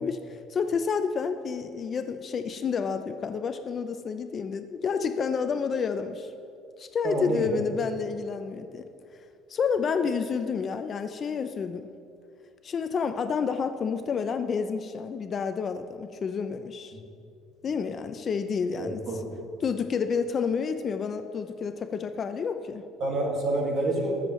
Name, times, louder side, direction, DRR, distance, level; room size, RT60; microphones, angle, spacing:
voice 1, 0.0-6.3 6.8-8.9 9.5-11.9 12.6-16.9 17.6-19.0 19.6-22.8, left 6 dB, 30° left, 8 dB, 0.4 m, -29 dB
voice 2, 7.0-7.6 18.8-19.2 23.0-24.1, right 2 dB, 40° right, -1 dB, 1.9 m, -28 dB
20.5 x 7.2 x 3.1 m, 2.5 s
cardioid pair, 170°, 0 cm